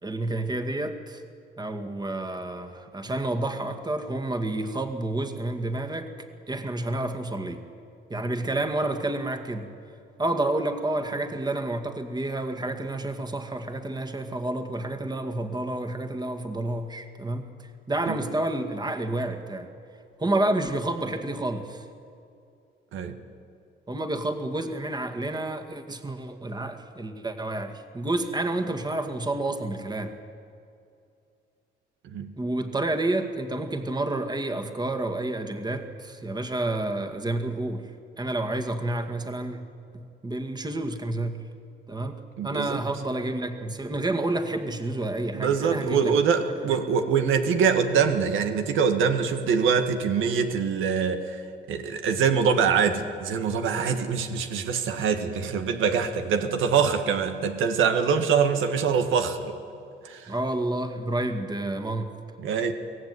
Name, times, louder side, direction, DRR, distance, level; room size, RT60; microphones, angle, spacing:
voice 1, 0.0-1.2 1.6-6.1 6.5-7.6 8.1-9.7 10.2-19.7 20.2-21.9 23.9-30.1 32.4-37.9 38.2-39.6 39.9-41.5 41.9-46.2 46.7-46.8 60.3-62.1, right 2 dB, 20° right, 6 dB, 2.1 m, -29 dB
voice 2, 42.4-42.8 45.3-51.4 51.7-59.5 60.0-60.3 62.4-62.7, right 6 dB, 85° right, 7 dB, 1.7 m, -24 dB
24.0 x 17.0 x 9.7 m, 2.5 s
cardioid pair, 90°, 20 cm